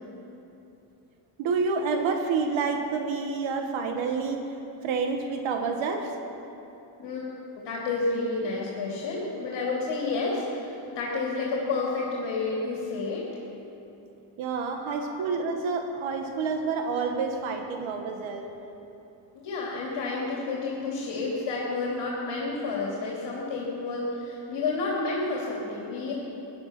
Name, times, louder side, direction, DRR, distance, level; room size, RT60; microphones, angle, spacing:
voice 1, 1.4-4.5 4.8-6.1 14.4-18.5, right 4 dB, 75° right, 4 dB, 1.4 m, -28 dB
voice 2, 7.0-13.3 14.9-15.0 19.3-26.1, left 3 dB, 60° left, -4 dB, 3.0 m, -30 dB
15.5 x 11.5 x 6.0 m, 3.0 s
cardioid pair, 120°, 47 cm